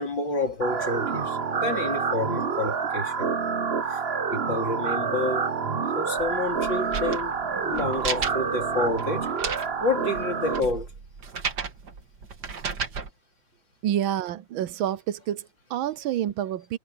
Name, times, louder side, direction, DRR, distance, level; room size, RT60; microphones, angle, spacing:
voice 1, 0.0-3.3 3.9-4.0 4.3-5.5 5.9-7.4 7.6-9.3 9.8-10.9, left 2 dB, 65° left, 4.6 m, -29 dB
sound 1, 0.6-10.6, right 5 dB, 40° right, 1.1 m, -28 dB
sound 2, 6.2-13.1, right 5 dB, 55° right, 2.4 m, -35 dB
voice 2, 13.8-16.8, right 11 dB, 85° right, 1.6 m, -28 dB
omnidirectional pair, 2.2 m